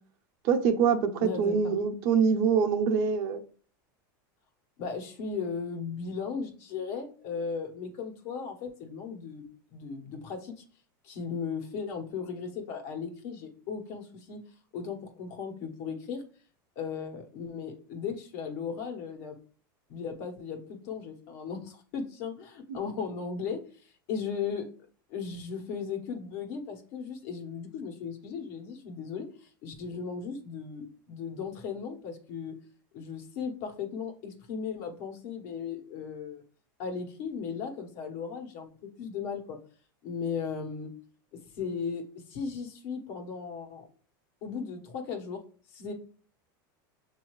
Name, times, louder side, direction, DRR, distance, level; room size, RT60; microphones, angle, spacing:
voice 1, 0.4-3.4, right 6 dB, 60° right, 6 dB, 0.8 m, -25 dB
voice 2, 1.2-1.8 4.8-9.4 9.7-10.6 11.0-14.4 14.7-16.2 16.7-19.4 19.9-23.6 24.1-24.7 25.1-32.5 32.9-36.4 36.8-38.7 39.0-39.6 40.0-40.9 41.6-43.9 44.4-45.4 45.7-45.9, left 6 dB, 65° left, 3 dB, 1.2 m, -36 dB
6.3 x 2.7 x 3.1 m, 0.42 s
supercardioid pair, 110°, 11 cm